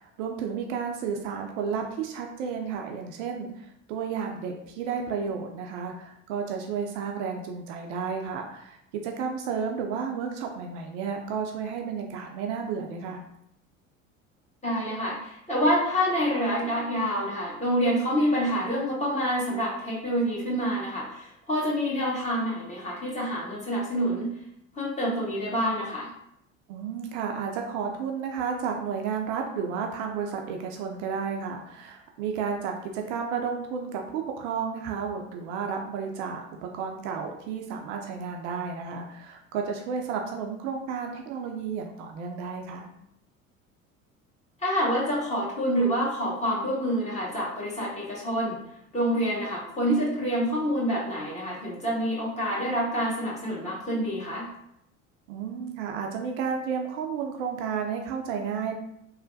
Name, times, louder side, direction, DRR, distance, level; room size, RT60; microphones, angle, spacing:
voice 1, 0.0-13.2 26.7-42.9 55.3-58.7, right 6 dB, 65° right, 2 dB, 0.5 m, -32 dB
voice 2, 14.6-24.3 24.7-26.1 44.6-48.6 48.9-54.5, equal, 15° left, -6 dB, 1.3 m, -27 dB
3.1 x 2.1 x 2.6 m, 0.76 s
figure-of-eight pair, 65°, 40 cm